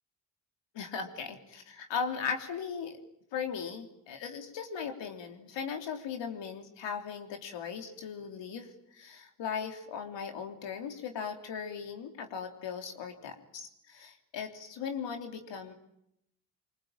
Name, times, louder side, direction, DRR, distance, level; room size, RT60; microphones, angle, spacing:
voice 1, 0.7-3.0 3.3-15.7, left 6 dB, 70° left, 4 dB, 3.4 m, -38 dB
25.0 x 24.5 x 8.9 m, 0.81 s
supercardioid pair, 50°, 45 cm